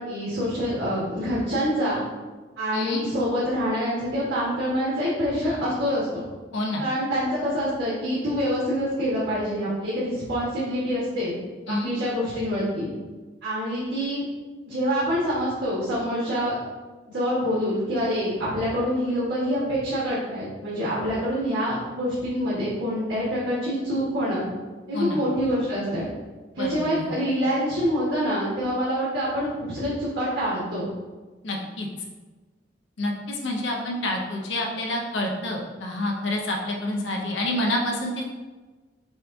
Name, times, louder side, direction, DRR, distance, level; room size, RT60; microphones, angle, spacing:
voice 1, 0.0-2.0 2.6-6.2 6.8-11.4 11.7-12.9 13.4-14.2 14.6-16.6 17.1-24.4 24.9-26.1 26.5-30.9, equal, 90° right, -10 dB, 1.2 m, -26 dB
voice 2, 2.7-3.0 6.5-6.9 11.7-11.9 24.9-25.2 26.6-27.2 31.4-31.9 33.0-38.3, left 1 dB, 85° left, 0 dB, 0.7 m, -28 dB
6.2 x 2.3 x 2.6 m, 1.3 s
head